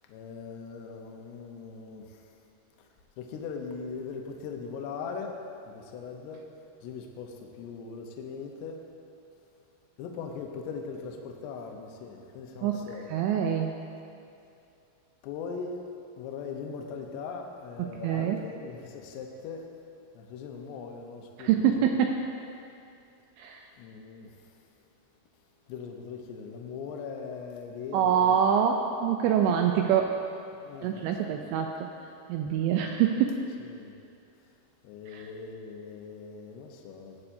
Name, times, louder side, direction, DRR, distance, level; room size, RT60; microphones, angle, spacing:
voice 1, 0.1-2.2 2.8-2.9 3.2-5.4 5.7-6.5 6.8-8.8 10.0-13.2 15.2-15.8 16.2-19.7 20.1-21.9 23.8-24.6 25.7-28.3 30.6-31.4 33.6-33.9 34.8-37.3, left 5 dB, 75° left, 2 dB, 2.6 m, -40 dB
voice 2, 12.6-13.7 17.8-18.4 21.4-22.3 23.4-23.7 27.9-30.2 30.8-31.9 32.3-33.5 35.1-35.3, right 8 dB, 85° right, 3 dB, 2.6 m, -25 dB
17.5 x 8.7 x 2.7 m, 2.5 s
omnidirectional pair, 5.6 m